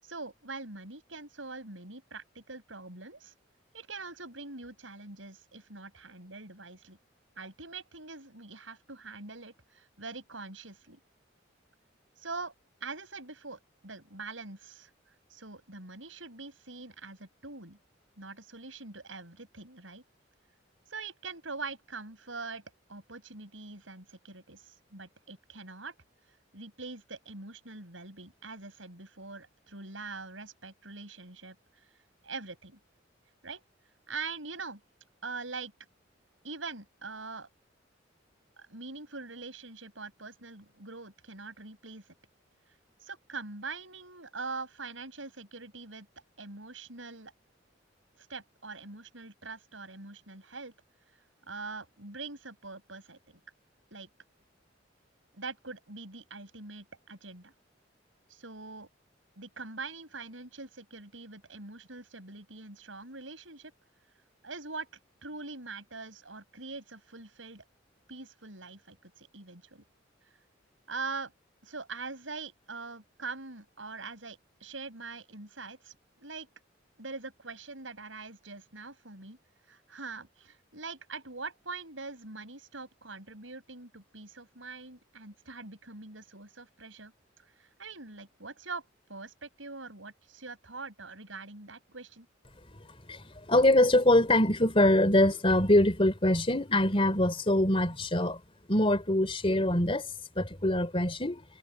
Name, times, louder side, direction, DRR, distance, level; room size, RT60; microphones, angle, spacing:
voice 1, 0.0-3.3 3.7-7.0 7.4-11.0 12.2-12.5 12.8-14.9 15.3-17.8 18.2-20.0 20.9-22.6 22.9-26.0 26.5-31.6 31.8-31.9 32.2-32.8 33.4-33.6 34.1-34.8 35.2-35.7 36.4-37.5 38.6-42.0 43.0-46.1 46.4-47.3 48.3-50.7 51.5-53.4 53.9-54.1 55.3-57.5 58.3-58.9 59.4-63.7 64.4-64.9 65.2-67.6 68.1-69.8 70.9-71.3 71.6-76.5 77.0-79.4 79.7-87.1 87.4-88.8 89.1-92.3, right 3 dB, 85° right, 7.1 m, -43 dB
voice 2, 93.1-98.4 98.7-100.1 100.4-101.4, left 1 dB, 30° left, 3.6 m, -24 dB
head